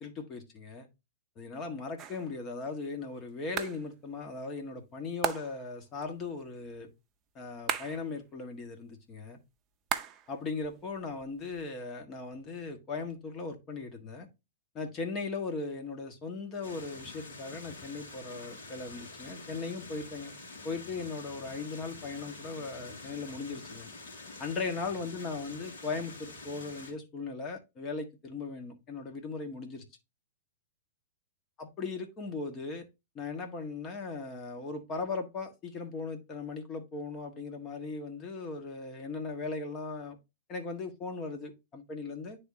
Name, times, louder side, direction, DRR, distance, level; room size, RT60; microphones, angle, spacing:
voice 1, 0.0-0.9 1.4-6.9 7.3-9.4 10.3-14.3 14.7-20.3 20.6-23.9 24.4-29.8 31.6-32.8 33.1-40.2 40.5-42.4, left 4 dB, 30° left, 1.5 m, -38 dB
sound 1, 2.0-2.4 3.6-3.9 5.2-5.7 7.7-8.1 9.9-10.4 10.6-11.6, right 8 dB, 30° right, 0.6 m, -36 dB
sound 2, 16.6-26.9, left 3 dB, 65° left, 2.1 m, -47 dB
10.0 x 3.7 x 2.7 m
hypercardioid pair, 105°, 0 cm